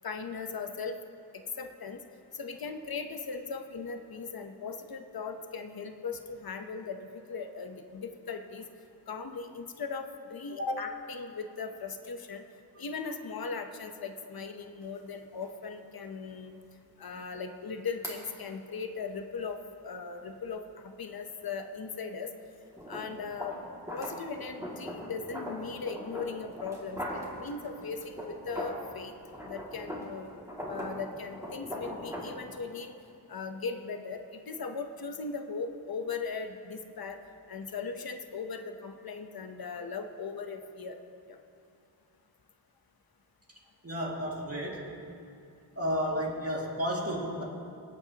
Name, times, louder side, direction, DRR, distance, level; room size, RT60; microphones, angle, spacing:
voice 1, 0.0-1.0 1.6-2.0 2.3-8.6 9.1-12.4 12.8-16.6 17.0-22.3 22.9-23.6 23.9-29.1 29.4-30.3 30.6-32.9 33.3-37.2 37.5-41.0 41.3-41.4, left 5 dB, 65° left, 6 dB, 0.9 m, -38 dB
sound 1, 14.8-14.9 15.4-15.5 18.0-18.2 22.7-28.9 29.2-32.4, equal, 10° right, 2.3 m, -40 dB
voice 2, 43.8-44.9 45.8-47.4, equal, 40° right, -2 dB, 2.2 m, -32 dB
24.0 x 8.7 x 2.9 m, 2.6 s
wide cardioid pair, 85°, 39 cm